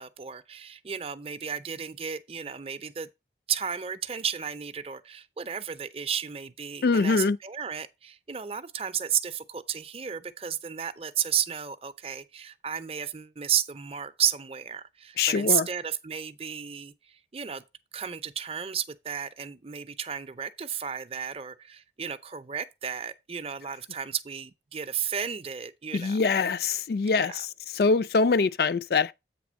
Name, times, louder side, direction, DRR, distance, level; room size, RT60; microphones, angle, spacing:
voice 1, 0.0-3.1 3.5-17.6 17.9-26.2 27.1-27.4, right 8 dB, 35° right, 0.5 m, -33 dB
voice 2, 6.8-7.4 15.2-15.7 25.9-27.5 27.7-29.1, left 4 dB, 60° left, 0.4 m, -24 dB
8.3 x 3.4 x 6.1 m
head